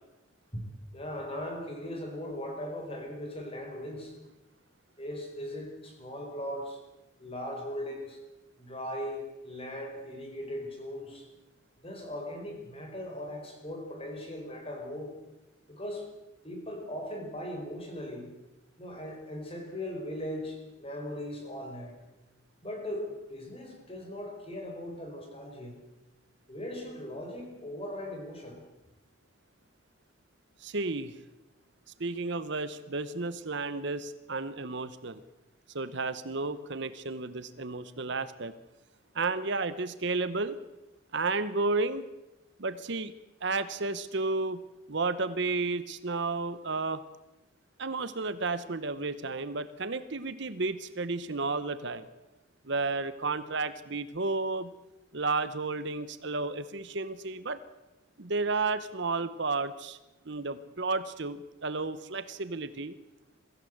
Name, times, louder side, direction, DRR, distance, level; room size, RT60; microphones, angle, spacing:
voice 1, 0.9-4.2 5.0-6.8 7.2-8.2 8.6-11.3 11.8-15.1 15.7-16.1 16.4-18.3 18.8-22.0 22.6-25.8 26.5-28.6, left 1 dB, 25° left, 2 dB, 4.9 m, -39 dB
voice 2, 30.6-31.2 32.0-35.2 35.7-38.5 39.1-40.6 41.1-42.0 42.6-43.1 43.4-44.6 44.9-47.0 47.8-52.1 52.6-54.7 55.1-57.6 58.2-60.0 60.3-62.9, right 3 dB, 55° right, 13 dB, 0.9 m, -32 dB
23.0 x 15.5 x 7.9 m, 1.0 s
head